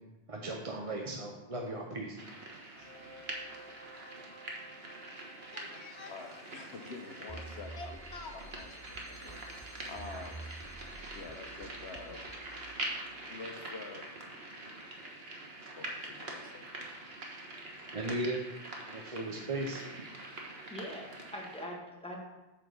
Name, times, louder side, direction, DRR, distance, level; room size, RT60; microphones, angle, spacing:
voice 1, 0.3-2.2 17.8-18.4 18.8-19.8, right 1 dB, 35° right, 1 dB, 0.8 m, -37 dB
sound 1, 2.2-21.7, right 2 dB, 65° right, 1.6 m, -45 dB
sound 2, 2.7-17.7, right 1 dB, 20° left, 1.8 m, -58 dB
voice 2, 5.4-16.8, left 3 dB, 90° left, 5 dB, 1.3 m, -48 dB
sound 3, 7.3-12.8, right 2 dB, 10° right, 0.3 m, -49 dB
voice 3, 20.7-22.2, equal, 5° left, -2 dB, 1.5 m, -42 dB
8.9 x 4.5 x 6.6 m, 1.1 s
omnidirectional pair, 1.1 m